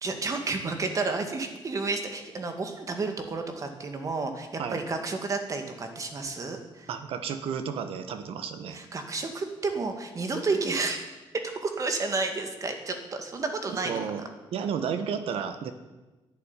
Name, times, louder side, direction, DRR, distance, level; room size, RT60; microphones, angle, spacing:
voice 1, 0.0-6.9 8.7-11.0 11.4-14.0, right 3 dB, 35° right, 6 dB, 2.2 m, -31 dB
voice 2, 6.9-8.8 13.4-14.2 14.5-15.7, right 7 dB, 80° right, 9 dB, 1.5 m, -32 dB
11.5 x 11.0 x 9.7 m, 1.1 s
cardioid pair, 135°, 10 cm